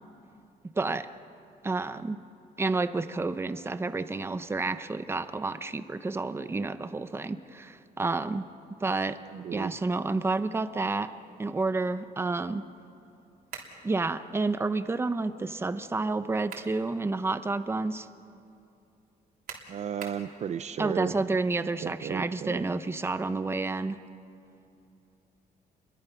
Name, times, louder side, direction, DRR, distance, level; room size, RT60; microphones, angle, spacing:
voice 1, 0.7-1.1 1.6-2.2 2.6-8.5 8.8-9.2 9.5-11.1 11.4-12.7 13.8-18.1 20.8-24.0, right 3 dB, 15° right, 12 dB, 0.8 m, -30 dB
voice 2, 9.3-9.7 19.7-21.2 21.8-22.6, right 8 dB, 50° right, 11 dB, 0.6 m, -34 dB
sound 1, 13.5-13.8 16.2-16.8 17.3-17.4 19.5-20.3, right 6 dB, 70° right, 3.3 m, -42 dB
29.5 x 22.0 x 5.8 m, 2.7 s
cardioid pair, 125°, 15 cm